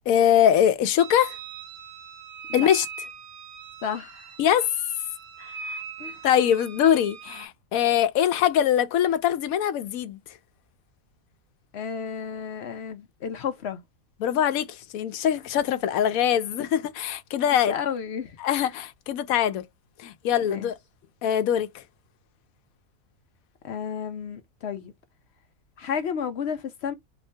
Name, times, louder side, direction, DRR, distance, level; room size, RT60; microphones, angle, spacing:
voice 1, 0.1-1.4 2.5-2.8 4.4-4.7 6.2-10.2 14.2-17.7 18.4-19.6 20.0-20.8 21.2-21.8, left 9 dB, 80° left, 1.0 m, -22 dB
sound 1, 1.0-7.5, right 6 dB, 75° right, 1.2 m, -40 dB
voice 2, 3.8-4.4 6.0-6.2 11.7-13.8 17.7-18.7 20.4-20.7 23.6-24.9 25.8-26.9, left 7 dB, 60° left, 0.7 m, -32 dB
3.0 x 2.7 x 3.2 m
omnidirectional pair, 1.5 m